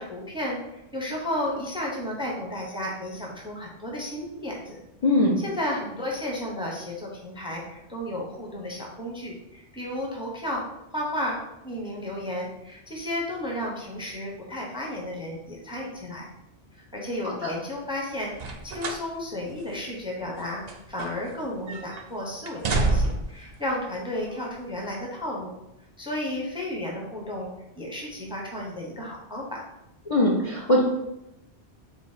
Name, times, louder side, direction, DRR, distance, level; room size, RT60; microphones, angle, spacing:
voice 1, 0.0-4.8 5.1-10.6 10.9-16.3 16.9-25.5 26.0-29.6, left 1 dB, 5° right, -2 dB, 0.7 m, -33 dB
voice 2, 5.0-5.3 17.4-17.5 30.1-30.8, left 1 dB, 40° left, -3 dB, 0.6 m, -21 dB
sound 1, 18.3-19.1 19.5-19.6 20.4-21.4 21.7-22.0 22.5-23.4 24.3-24.4, right 3 dB, 55° right, 0.5 m, -28 dB
4.3 x 2.5 x 4.8 m, 0.90 s
omnidirectional pair, 1.1 m